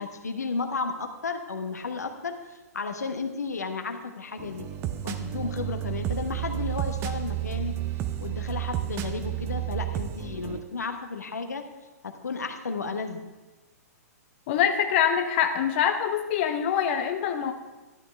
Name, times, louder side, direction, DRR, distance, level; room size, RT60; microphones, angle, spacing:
voice 1, 0.0-4.7 5.0-7.7 8.2-11.6 12.0-13.2, left 4 dB, 80° left, 6 dB, 1.0 m, -33 dB
sound 1, 4.4-10.6, right 13 dB, 30° right, 0.6 m, -31 dB
voice 2, 14.5-17.5, left 8 dB, 45° left, 6 dB, 0.7 m, -24 dB
12.5 x 8.7 x 3.3 m, 1.2 s
figure-of-eight pair, 115°, 9 cm